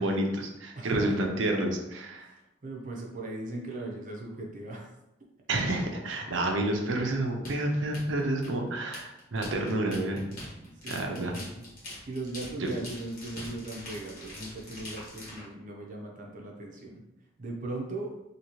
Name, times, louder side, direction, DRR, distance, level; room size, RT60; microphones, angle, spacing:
voice 1, 0.0-2.3 5.5-10.3 10.9-11.3 12.6-12.7, right 1 dB, 90° right, 2 dB, 0.6 m, -29 dB
voice 2, 0.7-1.1 2.2-4.9 10.5-11.6 12.1-17.0 17.4-18.2, right 2 dB, 45° right, -1 dB, 0.6 m, -39 dB
sound 1, 7.4-15.4, left 1 dB, 50° left, 1.2 m, -43 dB
2.8 x 2.8 x 3.0 m, 0.91 s
head